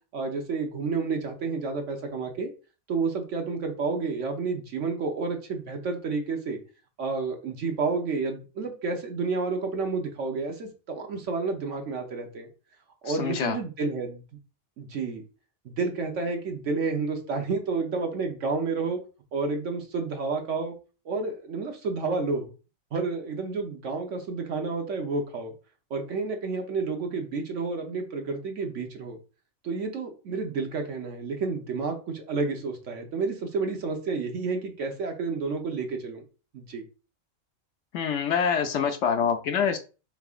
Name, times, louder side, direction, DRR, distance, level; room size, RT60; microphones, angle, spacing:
voice 1, 0.1-2.5 2.9-6.6 7.0-12.5 13.0-14.2 14.8-15.2 15.6-19.0 19.3-20.7 21.0-22.5 22.9-25.5 25.9-29.2 29.6-36.2 36.5-36.8, right 4 dB, 65° right, 3 dB, 1.2 m, -30 dB
voice 2, 13.1-13.6 37.9-39.8, left 7 dB, 70° left, 7 dB, 0.8 m, -25 dB
4.7 x 3.5 x 2.4 m, 0.34 s
omnidirectional pair, 1.4 m